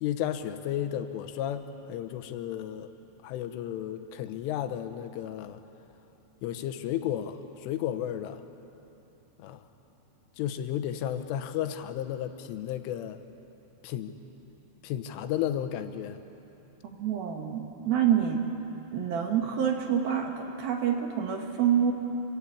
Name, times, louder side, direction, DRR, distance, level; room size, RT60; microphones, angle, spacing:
voice 1, 0.0-2.9 3.2-5.6 6.4-8.4 9.4-9.6 10.4-13.2 13.8-14.1 14.8-16.2, left 10 dB, 85° left, 9 dB, 3.6 m, -33 dB
voice 2, 16.8-18.4 18.9-21.9, right 9 dB, 65° right, 2 dB, 2.8 m, -27 dB
26.5 x 23.5 x 8.6 m, 3.0 s
omnidirectional pair, 5.5 m